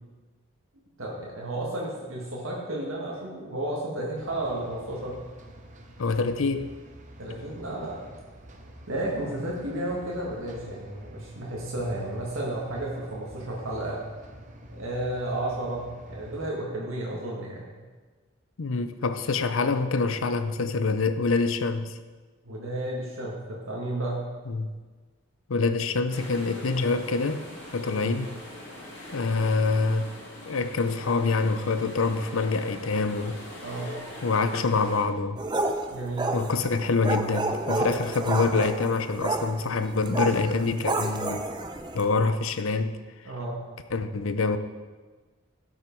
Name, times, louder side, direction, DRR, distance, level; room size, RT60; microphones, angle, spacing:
voice 1, 1.0-5.2 7.2-8.0 8.9-14.0 14.7-17.7 22.5-24.2 27.9-28.1 33.6-34.0 35.9-36.3 43.2-43.6, right 1 dB, 90° right, -3 dB, 1.8 m, -32 dB
sound 1, 4.2-16.5, equal, 35° right, 0.9 m, -47 dB
voice 2, 6.0-6.7 7.3-7.4 18.6-22.0 24.5-24.7 25.5-27.5 27.7-28.4 29.1-30.1 30.5-33.4 34.2-35.4 36.3-41.4 41.9-43.0 43.9-44.6, left 4 dB, 80° left, 11 dB, 0.6 m, -26 dB
sound 2, 26.1-35.0, left 1 dB, 55° left, 2.3 m, -42 dB
sound 3, 35.4-42.1, right 2 dB, 20° right, 0.6 m, -30 dB
12.0 x 6.5 x 4.6 m, 1.4 s
head